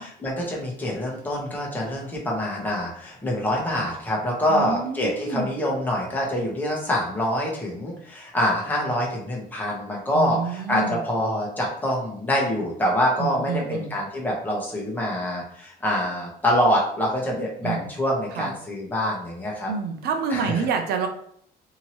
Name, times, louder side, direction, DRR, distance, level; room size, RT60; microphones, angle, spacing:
voice 1, 0.0-19.7 20.3-20.5, equal, 10° left, -3 dB, 1.0 m, -25 dB
voice 2, 4.5-5.5 10.1-11.0 13.2-13.9 17.6-17.8 18.3-18.5 19.7-21.1, right 5 dB, 70° right, 5 dB, 0.6 m, -28 dB
2.8 x 2.7 x 2.9 m, 0.65 s
cardioid pair, 110°, 17 cm